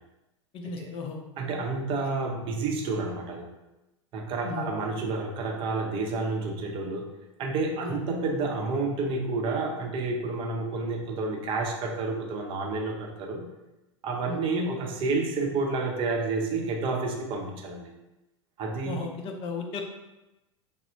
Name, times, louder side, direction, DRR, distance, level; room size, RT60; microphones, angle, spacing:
voice 1, 0.5-1.2 4.4-4.7 7.8-8.0 14.3-14.4 18.8-19.8, left 4 dB, 35° left, 3 dB, 0.5 m, -35 dB
voice 2, 1.4-3.5 4.1-7.1 7.4-13.4 14.0-17.9 18.6-18.9, right 3 dB, 35° right, 1 dB, 0.6 m, -30 dB
4.7 x 2.0 x 2.5 m, 0.99 s
figure-of-eight pair, 85°, 16 cm